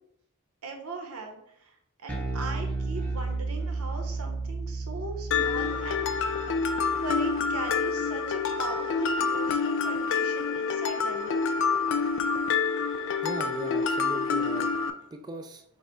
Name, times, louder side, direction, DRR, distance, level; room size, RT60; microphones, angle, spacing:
voice 1, 0.6-1.4 2.0-6.3 7.0-11.3, right 3 dB, 90° right, 3 dB, 0.9 m, -39 dB
Bass guitar, 2.1-8.5, right 3 dB, 5° left, 0.7 m, -34 dB
Mallet percussion, 5.3-14.9, left 5 dB, 60° left, 0.4 m, -27 dB
voice 2, 13.2-14.7 15.1-15.6, right 2 dB, 20° right, 4 dB, 0.3 m, -38 dB
5.7 x 2.1 x 4.4 m, 0.73 s
head